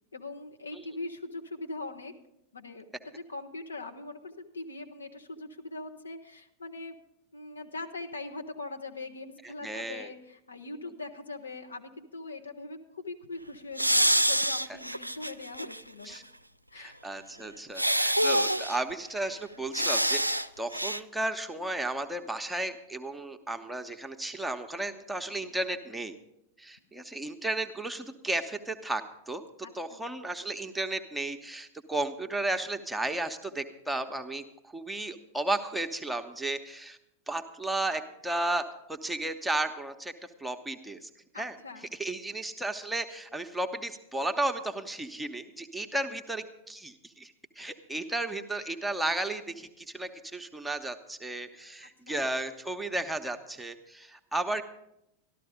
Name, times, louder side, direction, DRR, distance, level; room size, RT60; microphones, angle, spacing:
voice 1, 0.1-2.1 2.5-7.0 7.3-16.2 16.7-17.0 29.6-30.0 41.3-41.9 47.6-47.7 48.5-48.8 51.8-52.2, left 3 dB, 75° left, 5 dB, 1.0 m, -41 dB
voice 2, 9.6-10.1 16.0-16.2 16.8-26.1 26.6-29.4 29.7-37.0 37.3-40.1 40.4-41.6 41.8-54.6, right 2 dB, 5° right, 6 dB, 0.9 m, -34 dB
sound 1, 13.8-15.8 16.2-16.3 17.8-18.8 19.7-20.5 20.7-21.0, right 1 dB, 90° right, 0.4 m, -26 dB
13.0 x 12.5 x 5.0 m, 0.83 s
figure-of-eight pair, 90°, 0 cm